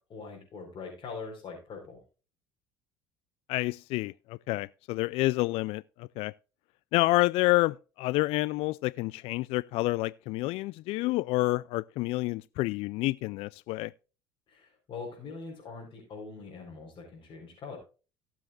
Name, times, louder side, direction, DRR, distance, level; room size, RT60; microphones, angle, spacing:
voice 1, 0.1-2.0 14.5-17.8, left 4 dB, 45° left, 4.6 m, -42 dB
voice 2, 3.5-6.3 6.9-13.9, left 20 dB, 65° left, 0.4 m, -28 dB
18.0 x 7.4 x 2.5 m
hypercardioid pair, 80°, 11 cm